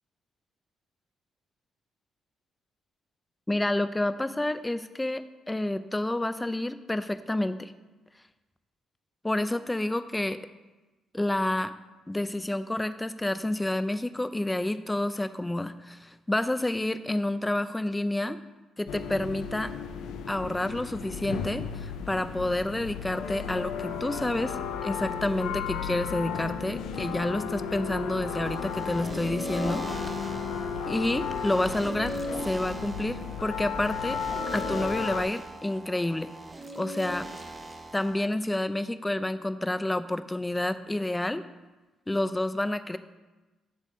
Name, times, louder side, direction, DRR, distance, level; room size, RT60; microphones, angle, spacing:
voice 1, 3.5-7.7 9.2-10.4 11.1-11.7 12.1-18.4 18.8-19.7 20.3-29.9 30.9-34.2 34.5-36.3 36.8-37.3 37.9-41.4 42.1-43.0, left 1 dB, 10° left, 12 dB, 0.4 m, -29 dB
sound 1, 18.9-35.2, left 7 dB, 85° left, 0.5 m, -35 dB
sound 2, 28.4-38.3, right 1 dB, 20° right, 0.8 m, -39 dB
8.5 x 3.5 x 6.1 m, 1.2 s
cardioid pair, 90°, 0 cm